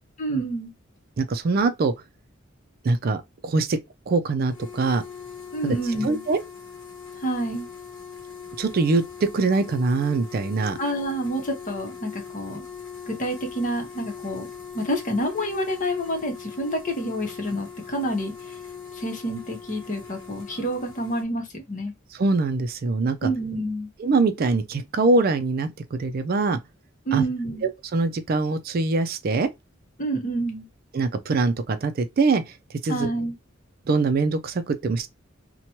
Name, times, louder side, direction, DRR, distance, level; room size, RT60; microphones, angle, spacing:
voice 1, 0.2-0.7 5.5-6.2 7.1-7.7 10.8-12.6 13.1-14.5 14.7-18.6 18.9-21.9 23.2-23.9 27.1-27.6 30.0-30.7 32.9-33.3, right 1 dB, 40° left, 0.9 m, -28 dB
voice 2, 1.2-1.9 2.8-3.8 4.1-5.0 5.6-5.8 6.0-6.4 8.6-10.8 22.2-23.3 24.0-26.6 27.1-27.2 27.6-29.5 30.9-32.6 32.8-33.1 33.9-35.1, right 3 dB, 45° right, 0.4 m, -23 dB
sound 1, 4.4-21.2, left 6 dB, 80° left, 0.9 m, -41 dB
2.9 x 2.2 x 2.7 m
head